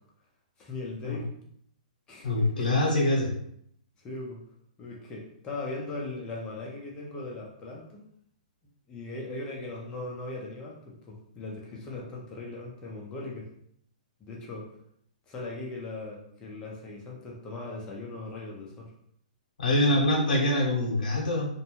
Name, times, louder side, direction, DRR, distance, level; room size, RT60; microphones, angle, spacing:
voice 1, 0.6-1.3 2.1-2.9 4.0-4.4 4.8-8.0 8.9-13.5 14.2-14.7 15.3-18.9 19.9-20.1, left 2 dB, 20° left, -2 dB, 0.6 m, -39 dB
voice 2, 2.2-3.3 19.6-21.5, left 1 dB, 85° left, -3 dB, 0.8 m, -24 dB
2.6 x 2.1 x 2.9 m, 0.69 s
hypercardioid pair, 145°, 4 cm